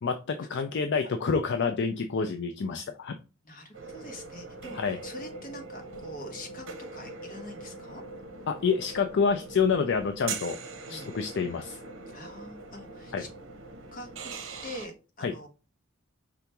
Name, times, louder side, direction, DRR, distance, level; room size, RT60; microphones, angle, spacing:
voice 1, 0.0-3.1 4.7-5.0 8.5-10.6 10.9-11.8 13.1-13.2 15.2-15.3, left 5 dB, 60° left, 7 dB, 0.5 m, -28 dB
voice 2, 3.4-8.0 10.9-11.1 12.1-13.3 13.9-14.3 14.6-15.5, left 1 dB, 40° left, 3 dB, 1.3 m, -44 dB
sound 1, 3.7-14.9, right 4 dB, 65° right, 0.9 m, -42 dB
4.9 x 3.4 x 2.9 m, 0.32 s
head